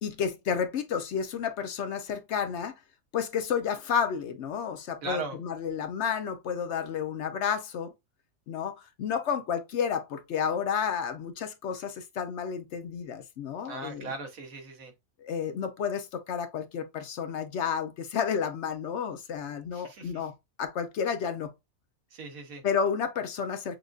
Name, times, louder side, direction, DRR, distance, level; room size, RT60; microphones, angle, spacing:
voice 1, 0.0-2.8 3.1-7.9 8.5-14.1 15.2-21.5 22.6-23.8, left 7 dB, 65° left, 0.8 m, -31 dB
voice 2, 5.0-5.4 13.6-14.9 19.7-20.1 22.1-22.6, right 3 dB, 85° right, 1.5 m, -38 dB
6.3 x 2.5 x 2.3 m
omnidirectional pair, 1.4 m